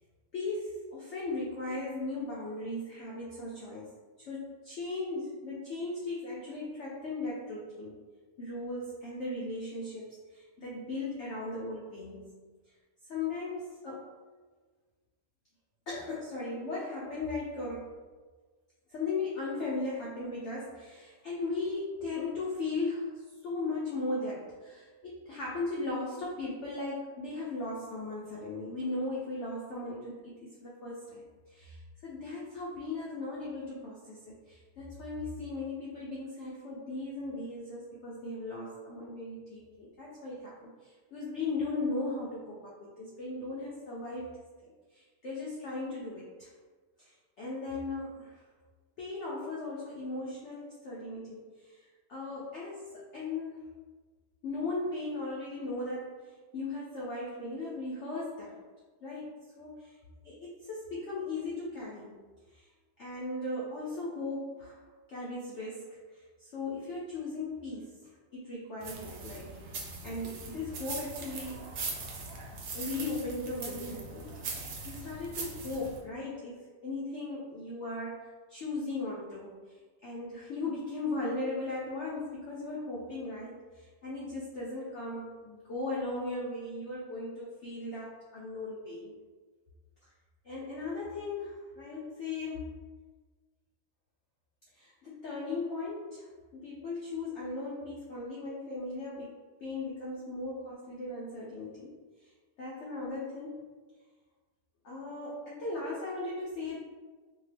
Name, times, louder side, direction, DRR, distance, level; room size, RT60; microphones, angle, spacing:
voice 1, 0.3-3.9 4.2-8.0 8.4-12.3 13.1-14.1 15.9-17.9 18.9-44.4 44.6-46.5 47.0-48.4 49.0-53.8 54.4-58.6 59.0-59.3 59.5-60.0 60.2-62.2 62.5-62.7 63.0-64.8 65.1-69.7 70.0-71.8 72.7-89.1 90.4-92.8 94.7-99.3 99.6-101.9 102.2-102.3 102.6-103.6 104.8-106.8, left 2 dB, 80° left, -6 dB, 0.6 m, -37 dB
sound 1, 68.8-76.0, right 3 dB, 70° right, 0.8 m, -41 dB
2.7 x 2.2 x 3.2 m, 1.4 s
omnidirectional pair, 1.8 m